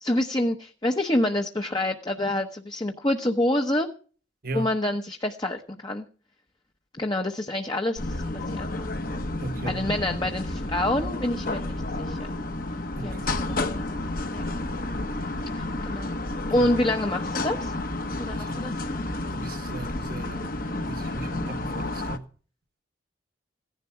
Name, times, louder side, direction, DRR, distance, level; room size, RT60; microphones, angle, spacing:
voice 1, 0.0-3.9 4.5-6.0 7.0-9.0 9.7-12.3 13.0-14.4 15.5-17.7 18.2-19.0, left 1 dB, 20° left, 1.0 m, -28 dB
sound 1, 8.0-22.2, left 2 dB, 45° left, 1.3 m, -31 dB
voice 2, 9.4-9.8 13.0-13.3 16.5-16.7 18.3-18.6 19.3-22.3, right 2 dB, 50° right, 1.2 m, -37 dB
16.5 x 11.0 x 5.8 m
head